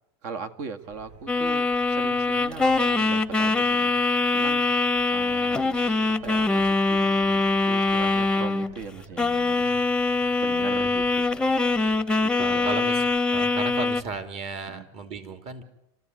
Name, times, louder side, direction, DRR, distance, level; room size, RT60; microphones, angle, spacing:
voice 1, 0.2-9.9 10.4-11.3 12.2-12.8 14.7-14.9, right 5 dB, 65° right, 9 dB, 1.9 m, -40 dB
sound 1, 0.8-14.3, right 2 dB, 85° right, 7.5 m, -50 dB
sound 2, 1.3-8.8 9.2-14.0, left 3 dB, 5° left, 0.8 m, -23 dB
voice 2, 10.6-10.9 12.4-13.0 13.3-15.6, right 4 dB, 50° right, 8 dB, 3.0 m, -35 dB
27.0 x 14.0 x 9.5 m, 0.87 s
supercardioid pair, 130°, 14 cm